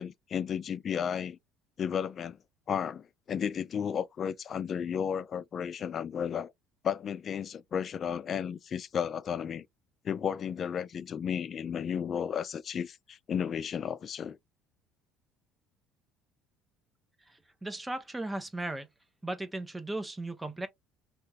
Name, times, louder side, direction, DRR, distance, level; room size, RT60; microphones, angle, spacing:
voice 1, 0.0-1.4 1.8-2.4 2.7-6.5 6.8-9.7 10.0-14.4, left 8 dB, 40° left, 0.3 m, -33 dB
voice 2, 17.6-18.9 19.2-20.7, right 2 dB, 10° right, 0.7 m, -36 dB
2.9 x 2.3 x 2.7 m
cardioid pair, 110°, 0 cm